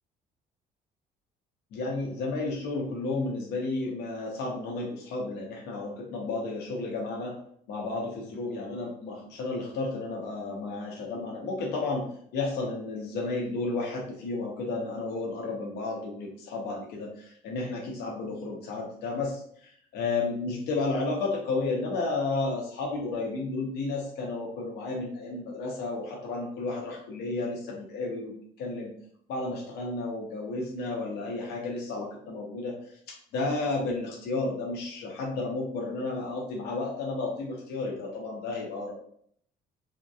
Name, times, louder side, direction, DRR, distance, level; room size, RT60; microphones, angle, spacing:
voice 1, 1.7-7.4 7.7-12.1 12.3-28.3 28.6-28.9 29.3-33.0 33.3-38.9, left 3 dB, 75° left, -2 dB, 0.6 m, -32 dB
2.7 x 2.1 x 2.3 m, 0.64 s
cardioid pair, 110°, 17 cm